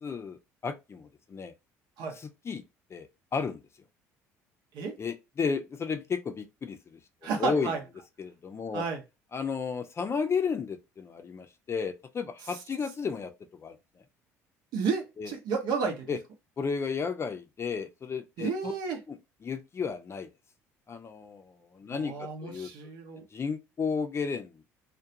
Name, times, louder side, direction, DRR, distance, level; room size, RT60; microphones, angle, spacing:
voice 1, 0.0-1.5 2.2-2.6 2.9-3.6 5.0-7.0 7.4-7.7 8.2-8.8 9.3-13.3 13.6-13.8 15.2-15.3 16.1-16.2 16.6-18.7 19.1-19.2 19.4-20.3 20.9-22.7 23.3-24.6, left 5 dB, 30° left, 0.5 m, -33 dB
voice 2, 7.2-7.8 8.7-9.0 14.7-16.1 18.4-19.0 21.9-23.2, right 5 dB, 65° right, 0.8 m, -31 dB
2.3 x 2.2 x 2.7 m
hypercardioid pair, 60°, 8 cm